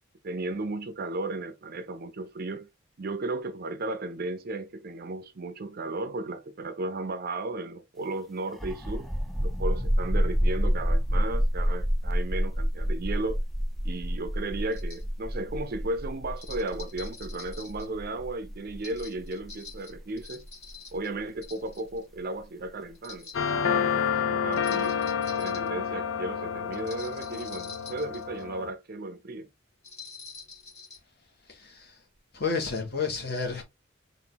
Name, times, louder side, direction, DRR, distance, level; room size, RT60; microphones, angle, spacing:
voice 1, 0.2-2.7 3.0-9.1 9.4-13.4 13.8-20.4 20.9-23.3 23.6-25.0 25.4-29.5, right 2 dB, 50° right, 0.6 m, -35 dB
sound 1, 8.5-21.9, equal, ahead, 0.4 m, -28 dB
sound 2, 14.7-15.0 16.4-17.9 18.8-21.1 21.4-22.0 22.9-23.5 24.5-25.7 26.7-28.4 29.8-31.0, left 5 dB, 35° left, 2.6 m, -46 dB
sound 3, 23.3-28.7, left 7 dB, 80° left, 0.6 m, -29 dB
voice 2, 31.5-32.0 32.3-33.6, left 5 dB, 50° left, 1.5 m, -31 dB
4.0 x 2.6 x 3.8 m
head